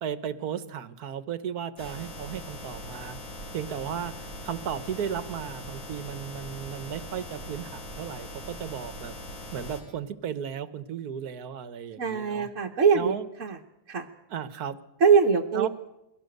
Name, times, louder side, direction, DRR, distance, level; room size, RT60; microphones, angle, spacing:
voice 1, 0.0-3.2 3.5-9.1 9.5-12.5 12.9-13.3 14.3-14.8 15.5-15.7, right 8 dB, 85° right, 14 dB, 1.5 m, -35 dB
sound 1, 1.8-9.8, left 1 dB, 65° left, 6.7 m, -41 dB
voice 2, 12.0-13.1 13.4-13.6 13.9-14.1 15.0-15.7, right 6 dB, 60° right, 1 dB, 1.4 m, -22 dB
21.5 x 17.5 x 7.9 m, 0.91 s
omnidirectional pair, 1.6 m